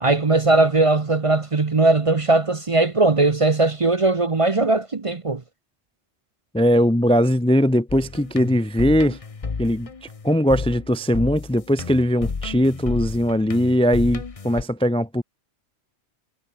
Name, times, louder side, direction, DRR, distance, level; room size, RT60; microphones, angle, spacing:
voice 1, 0.0-5.4, right 2 dB, 30° right, 0.9 m, -19 dB
voice 2, 6.5-9.2 9.6-9.9 10.2-15.2, equal, 5° left, 0.6 m, -20 dB
sound 1, 7.9-14.6, left 4 dB, 30° left, 1.0 m, -32 dB
omnidirectional pair, 1.2 m